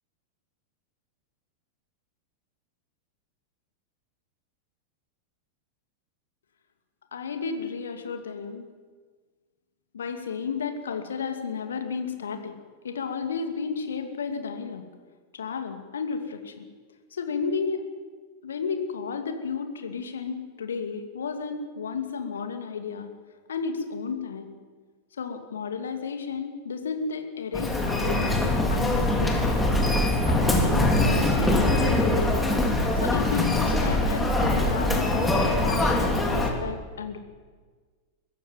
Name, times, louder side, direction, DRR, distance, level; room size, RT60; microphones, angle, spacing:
voice 1, 7.1-8.7 9.9-12.5 12.8-14.8 15.3-16.7 17.1-17.8 18.4-23.1 23.5-24.5 25.2-29.4 30.3-32.5 33.0-37.2, left 5 dB, 65° left, 6 dB, 2.5 m, -32 dB
Human voice, 27.5-36.5, left 1 dB, 10° left, 3.7 m, -23 dB
23.5 x 14.5 x 9.2 m, 1.5 s
figure-of-eight pair, 90°, 0 cm